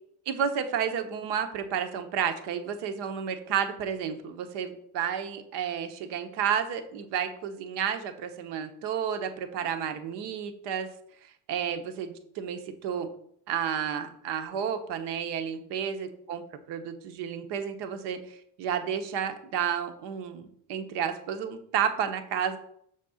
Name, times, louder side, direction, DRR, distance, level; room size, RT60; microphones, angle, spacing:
voice 1, 0.3-10.9 11.2-13.1 13.5-16.4 16.7-22.6, right 8 dB, 85° right, 7 dB, 1.1 m, -31 dB
6.5 x 4.2 x 6.4 m, 0.68 s
cardioid pair, 155°, 41 cm